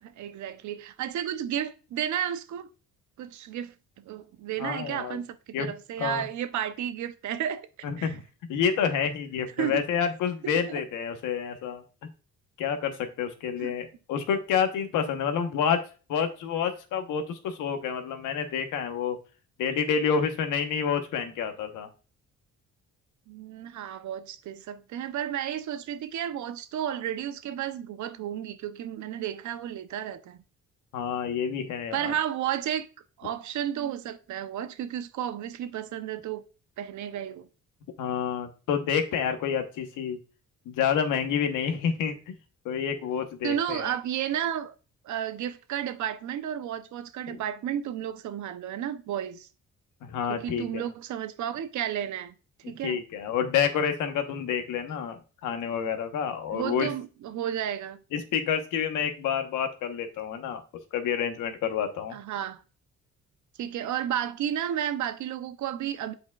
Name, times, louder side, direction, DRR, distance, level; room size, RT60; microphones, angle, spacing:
voice 1, 0.0-2.7 3.2-7.7 8.0-8.2 9.6-9.8 10.5-10.8 13.6-13.8 23.3-30.4 31.9-32.9 33.2-36.4 36.8-37.5 43.4-44.7 45.0-49.5 50.3-52.3 52.7-53.0 56.5-58.0 62.1-62.6 63.6-66.1, right 10 dB, 70° right, 0.7 m, -32 dB
voice 2, 4.6-5.2 5.5-5.7 6.0-6.2 7.8-8.2 8.5-11.8 12.6-15.8 16.1-19.2 19.6-21.9 30.9-32.1 38.0-40.2 40.7-42.3 42.6-43.8 47.3-47.4 50.0-50.9 52.6-56.9 58.1-60.6 60.9-62.1, left 7 dB, 90° left, 1.1 m, -28 dB
8.2 x 5.0 x 2.3 m
cardioid pair, 90°, 30 cm